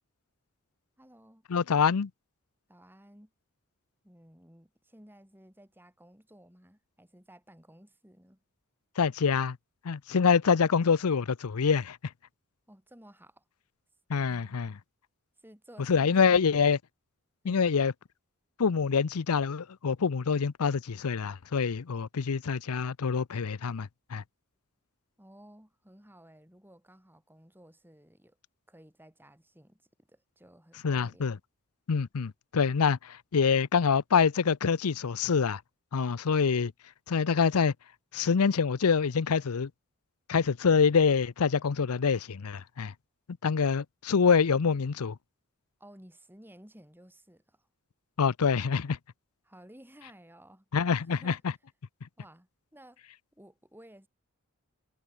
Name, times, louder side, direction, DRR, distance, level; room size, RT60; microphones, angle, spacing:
voice 1, 1.0-1.4 2.7-3.3 4.0-8.4 12.7-13.4 14.3-14.6 15.4-16.6 17.4-17.8 25.2-28.4 28.7-31.4 45.8-47.7 49.4-50.7 51.0-51.4 52.2-53.0 53.3-54.1, right 1 dB, 10° right, 7.2 m, -55 dB
voice 2, 1.5-2.1 9.0-9.6 9.8-12.0 14.1-14.7 15.9-16.8 17.5-17.9 18.6-24.2 30.8-31.4 31.9-35.6 35.9-36.7 37.1-37.7 38.1-39.7 40.3-42.9 43.4-45.2 48.2-49.0 50.7-51.3, left 6 dB, 85° left, 0.6 m, -26 dB
head